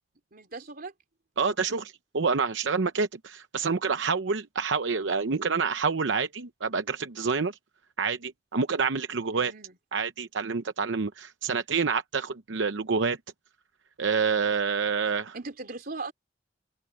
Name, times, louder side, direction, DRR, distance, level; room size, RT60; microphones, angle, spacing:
voice 1, 0.3-0.9 9.3-9.8 15.3-16.1, right 3 dB, 55° right, 3.7 m, -39 dB
voice 2, 1.4-7.6 8.0-9.5 9.9-13.2 14.0-15.3, right 5 dB, 85° right, 0.8 m, -27 dB
head